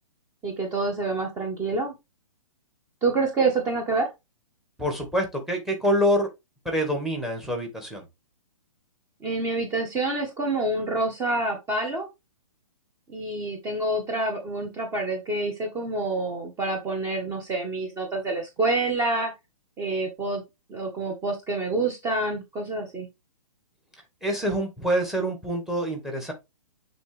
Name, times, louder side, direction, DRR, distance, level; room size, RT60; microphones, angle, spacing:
voice 1, 0.4-1.9 3.0-4.1 9.2-12.1 13.1-19.3 19.8-20.4 20.7-23.1, right 2 dB, 20° right, 1.4 m, -27 dB
voice 2, 4.8-6.3 6.6-8.1 24.2-26.3, equal, ahead, 1.7 m, -26 dB
8.3 x 3.8 x 3.4 m
hypercardioid pair, 140°, 18 cm